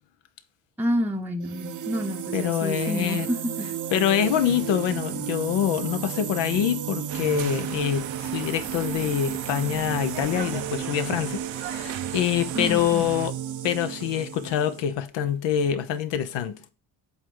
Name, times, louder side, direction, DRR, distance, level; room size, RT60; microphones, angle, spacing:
voice 1, 0.8-3.7 12.5-13.1, equal, 5° right, 0.7 m, -29 dB
sound 1, 1.4-14.8, right 9 dB, 45° right, 0.7 m, -33 dB
voice 2, 2.3-3.3 3.9-13.3 13.6-16.6, left 10 dB, 85° left, 0.9 m, -25 dB
sound 2, 7.1-13.3, right 12 dB, 85° right, 0.8 m, -38 dB
8.2 x 3.4 x 3.8 m
cardioid pair, 100°, 43 cm